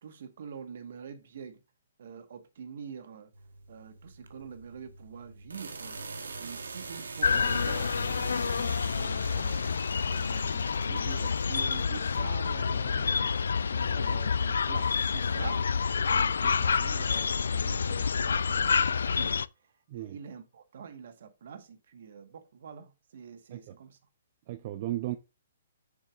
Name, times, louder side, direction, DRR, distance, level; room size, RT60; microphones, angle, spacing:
voice 1, 0.0-1.6 2.0-3.3 3.7-6.0 6.4-9.7 10.1-13.3 13.7-15.6 16.0-19.4 19.9-24.0, right 7 dB, 65° right, 1.5 m, -45 dB
sound 1, 3.3-13.4, right 3 dB, 90° right, 1.3 m, -44 dB
sound 2, 7.2-19.5, left 5 dB, 80° left, 0.3 m, -28 dB
sound 3, 17.9-20.0, left 7 dB, 55° left, 1.8 m, -52 dB
voice 2, 24.5-25.2, right 15 dB, 45° right, 0.6 m, -35 dB
7.1 x 7.1 x 2.5 m
hypercardioid pair, 135°, 0 cm